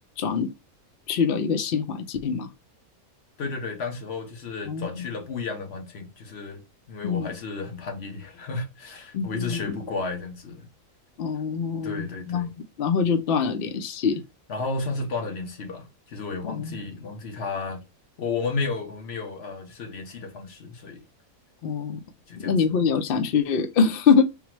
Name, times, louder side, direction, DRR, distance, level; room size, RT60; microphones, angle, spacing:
voice 1, 0.2-0.5 1.1-2.5 4.7-5.0 7.0-7.3 9.1-9.8 11.2-12.5 12.8-14.2 16.5-16.8 21.6-22.0 22.4-24.2, left 6 dB, 70° left, 0.5 m, -24 dB
voice 2, 3.4-10.6 11.8-12.5 14.5-17.8 18.2-21.0 22.3-22.5 22.8-22.9, left 4 dB, 50° left, 1.0 m, -33 dB
3.9 x 2.0 x 4.3 m
omnidirectional pair, 1.5 m